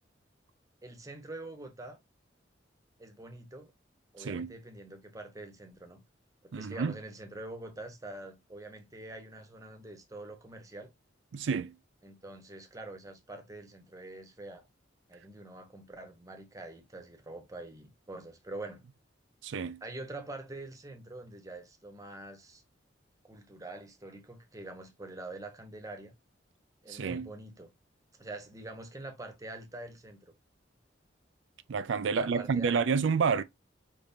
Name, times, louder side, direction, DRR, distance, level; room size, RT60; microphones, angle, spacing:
voice 1, 0.8-2.0 3.0-3.7 4.1-6.0 6.4-10.9 12.0-14.7 15.1-18.8 19.8-22.6 23.2-26.1 26.8-27.7 28.2-30.3 32.1-32.8, right 2 dB, 20° right, 1.0 m, -45 dB
voice 2, 4.2-4.5 6.5-6.9 11.3-11.7 19.4-19.8 26.9-27.3 31.7-33.4, right 5 dB, 75° right, 0.4 m, -29 dB
4.9 x 3.5 x 2.7 m
head